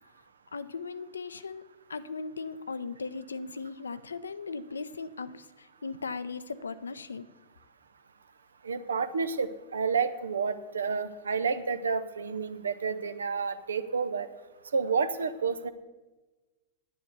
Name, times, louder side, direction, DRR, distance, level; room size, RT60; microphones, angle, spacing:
voice 1, 0.5-7.3, left 4 dB, 75° left, 15 dB, 0.5 m, -38 dB
voice 2, 8.6-14.3 14.7-15.7, right 5 dB, 70° right, 13 dB, 0.7 m, -30 dB
10.0 x 9.5 x 6.7 m, 1.2 s
figure-of-eight pair, 90°, 0 cm